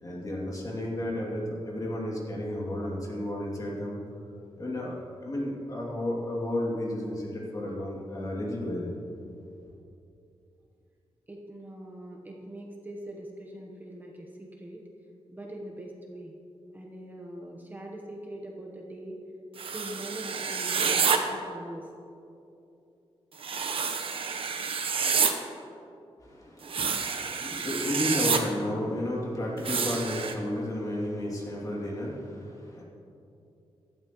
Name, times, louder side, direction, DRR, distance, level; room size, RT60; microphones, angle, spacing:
voice 1, 0.0-4.0 4.6-5.0 5.2-8.9 26.2-32.8, left 1 dB, 35° left, -4 dB, 2.7 m, -32 dB
voice 2, 11.3-14.8 15.3-16.3 16.7-19.2 19.7-21.0 21.3-21.9, right 1 dB, 15° right, -1 dB, 1.1 m, -42 dB
sound 1, 19.6-21.2 23.4-25.3 26.6-28.4 29.6-30.3, right 6 dB, 65° right, 0.9 m, -28 dB
16.0 x 12.0 x 3.1 m, 2.8 s
wide cardioid pair, 130°, 10 cm